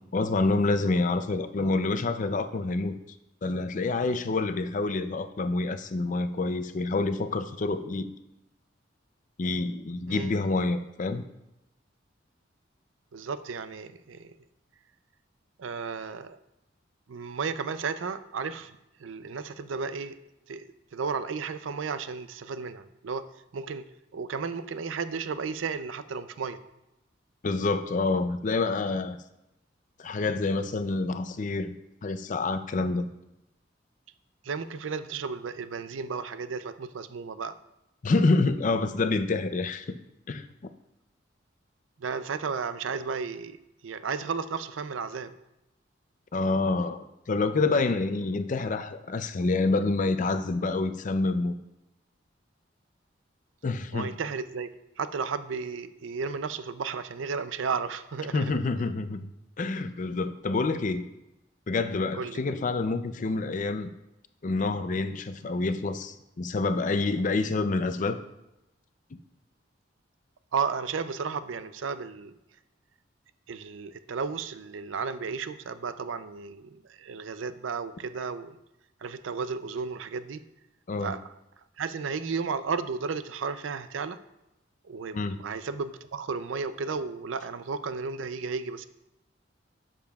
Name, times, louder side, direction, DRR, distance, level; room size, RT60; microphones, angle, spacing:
voice 1, 0.1-3.0 3.4-8.1 9.4-11.2 27.4-29.2 30.0-31.7 32.0-33.1 38.0-39.9 40.3-40.5 46.3-51.5 53.6-54.1 58.3-59.3 59.6-61.0 61.7-63.9 64.4-68.2 80.9-81.2 85.1-85.4, left 3 dB, 40° left, 10 dB, 0.4 m, -27 dB
voice 2, 13.1-14.3 15.6-16.4 17.1-18.7 19.0-20.2 20.5-20.7 20.9-23.3 23.5-23.9 24.1-26.6 34.4-37.6 42.0-43.6 43.8-45.3 53.9-54.7 55.0-58.5 62.1-62.4 70.5-72.3 73.5-78.6 79.0-80.4 81.0-81.2 81.8-84.2 84.8-88.9, right 5 dB, 90° right, 12 dB, 0.5 m, -33 dB
11.5 x 7.3 x 2.3 m, 0.90 s
head